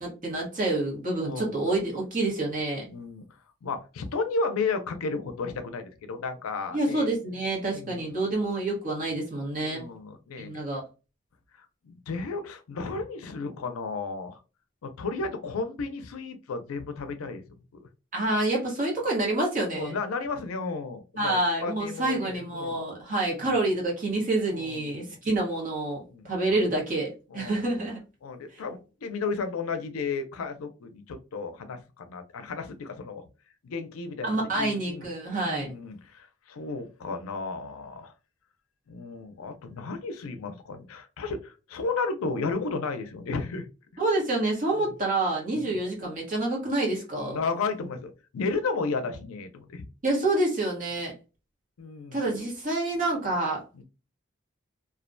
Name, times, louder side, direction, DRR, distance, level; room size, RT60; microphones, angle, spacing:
voice 1, 0.0-2.8 6.7-9.8 10.4-10.8 18.1-19.9 21.2-28.0 28.5-28.6 34.2-35.7 44.0-47.4 50.0-51.1 52.1-53.6, right 2 dB, 40° right, 0.9 m, -28 dB
voice 2, 1.2-1.6 2.9-3.2 3.6-7.1 7.6-8.0 9.6-10.6 11.6-14.4 14.8-17.4 17.7-17.9 19.7-22.8 24.5-25.2 26.1-26.6 27.3-27.7 28.2-33.2 33.6-34.3 34.5-35.1 35.4-38.1 38.9-43.7 44.8-44.9 45.6-45.8 47.2-49.8 51.8-52.3 53.8-53.9, left 4 dB, 90° left, 0.5 m, -33 dB
2.3 x 2.1 x 2.5 m
head